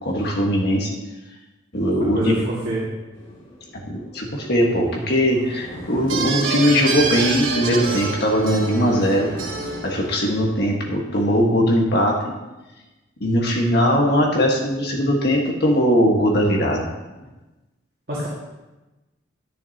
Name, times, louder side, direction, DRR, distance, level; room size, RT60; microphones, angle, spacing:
voice 1, 0.0-0.9 1.7-2.3 3.7-9.3 9.8-12.3 13.2-16.9, equal, 55° left, -1 dB, 1.6 m, -20 dB
voice 2, 2.1-2.8 18.1-18.3, right 1 dB, 50° right, -9 dB, 2.1 m, -25 dB
sound 1, 3.1-11.9, equal, 30° left, 2.5 m, -39 dB
sound 2, 6.1-10.3, right 5 dB, 85° right, 1.5 m, -27 dB
10.5 x 10.0 x 2.9 m, 1.1 s
head